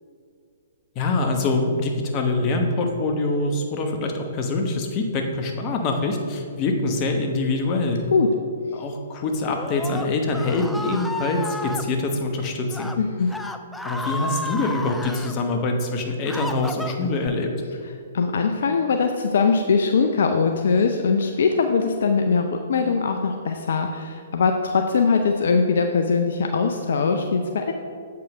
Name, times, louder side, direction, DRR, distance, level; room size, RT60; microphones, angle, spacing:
voice 1, 0.9-8.0 8.7-12.9 13.8-17.5, left 2 dB, 35° left, 3 dB, 1.1 m, -24 dB
Screaming, 9.5-11.8 12.6-13.0 13.3-15.3 15.9-17.3, left 1 dB, 5° left, 0.4 m, -32 dB
voice 2, 13.0-13.3 18.1-27.7, left 5 dB, 65° left, 5 dB, 0.5 m, -21 dB
7.7 x 5.6 x 4.9 m, 2.3 s
figure-of-eight pair, 120°, 0 cm